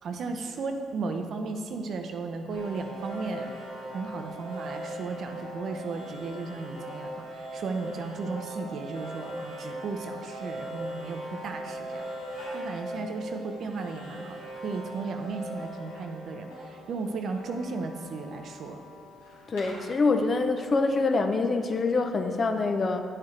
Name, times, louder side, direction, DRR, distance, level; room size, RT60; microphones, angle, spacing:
voice 1, 0.0-3.5 3.9-12.1 12.5-18.8, right 4 dB, 60° right, 5 dB, 0.7 m, -35 dB
sound 1, 2.5-20.5, right 1 dB, 90° left, 1.7 m, -40 dB
voice 2, 19.5-23.0, left 3 dB, 45° left, 6 dB, 0.7 m, -25 dB
10.5 x 5.7 x 3.3 m, 2.3 s
hypercardioid pair, 50°, 0 cm